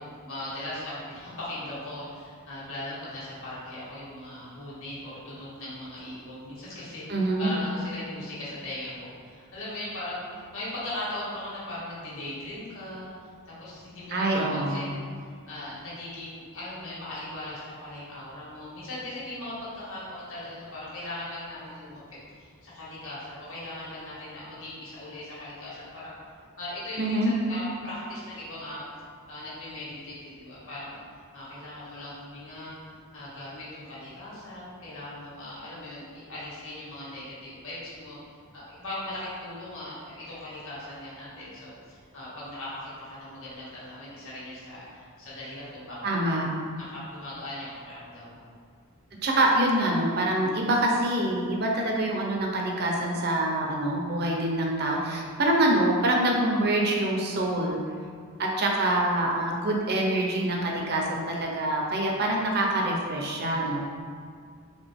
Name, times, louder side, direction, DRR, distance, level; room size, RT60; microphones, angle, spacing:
voice 1, 0.0-7.0 7.4-15.0 15.5-26.1 26.6-28.9 29.3-31.0 31.3-32.8 33.1-38.2 38.5-46.3 46.7-48.4, left 1 dB, 60° left, -8 dB, 1.5 m, -39 dB
voice 2, 7.1-7.5 14.1-14.8 27.0-27.3 46.0-46.5 49.2-57.8 58.4-63.8, right 1 dB, 45° right, -1 dB, 0.6 m, -25 dB
4.0 x 3.6 x 3.5 m, 2.1 s
head